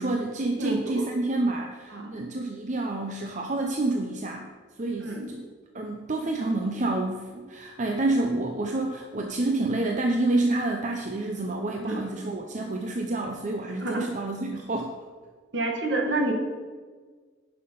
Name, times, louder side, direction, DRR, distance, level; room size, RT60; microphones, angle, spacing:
voice 1, 0.0-4.5 4.8-5.4 5.7-14.9, right 2 dB, 40° right, 2 dB, 0.7 m, -28 dB
voice 2, 0.6-1.1 1.9-2.1 5.0-5.3 11.8-12.1 13.8-14.1 15.5-16.3, right 2 dB, 65° right, 1 dB, 1.7 m, -28 dB
10.5 x 5.8 x 5.5 m, 1.5 s
head